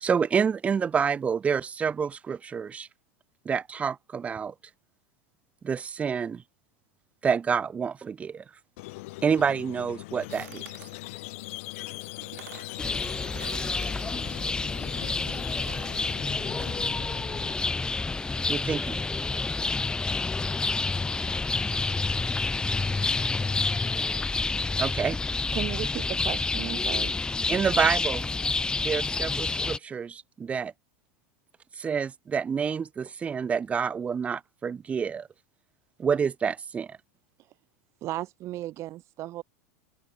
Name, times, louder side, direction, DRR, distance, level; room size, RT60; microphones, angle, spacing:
voice 1, 0.0-2.9 3.5-4.5 5.6-6.4 7.2-8.4 9.2-10.6 18.5-19.0 24.8-25.2 27.5-28.3 28.8-30.7 31.8-35.3 36.0-37.0, right 6 dB, 15° right, 0.3 m, -28 dB
Squeak, 8.8-17.5, left 22 dB, 70° left, 0.9 m, -41 dB
sound 1, 10.3-11.0 11.9-12.0 12.2-12.8 13.3-14.1 15.3-15.9, right 15 dB, 80° right, 3.0 m, -48 dB
sound 2, 12.8-29.8, left 3 dB, 10° left, 1.1 m, -29 dB
voice 2, 21.3-21.4, left 13 dB, 90° left, 7.8 m, -60 dB
voice 3, 25.5-27.1 38.0-39.4, right 15 dB, 40° right, 0.7 m, -35 dB
supercardioid pair, 130°, 8 cm